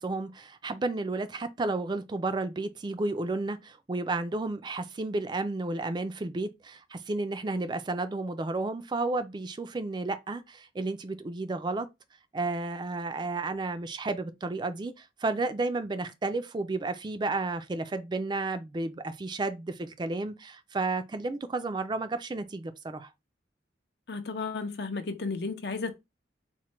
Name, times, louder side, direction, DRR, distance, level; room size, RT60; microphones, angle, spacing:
voice 1, 0.0-11.9 12.3-23.1, right 3 dB, 25° right, 0.3 m, -32 dB
voice 2, 24.1-26.0, left 4 dB, 60° left, 0.6 m, -33 dB
4.3 x 2.1 x 3.0 m
head